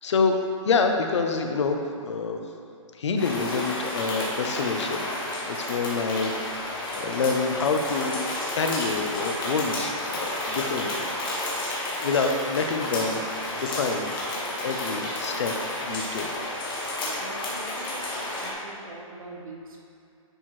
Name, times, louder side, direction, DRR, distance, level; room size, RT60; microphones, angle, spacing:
voice 1, 0.0-0.4 0.6-2.4 2.9-5.1 5.4-8.2 8.5-11.1 11.4-14.1 14.6-16.3, left 4 dB, 55° left, 4 dB, 0.7 m, -27 dB
sound 1, 3.2-18.5, left 1 dB, 40° left, 1.5 m, -31 dB
voice 2, 17.0-19.8, right 2 dB, 80° right, -1 dB, 1.4 m, -43 dB
9.9 x 4.4 x 3.2 m, 2.6 s
hypercardioid pair, 175°, 18 cm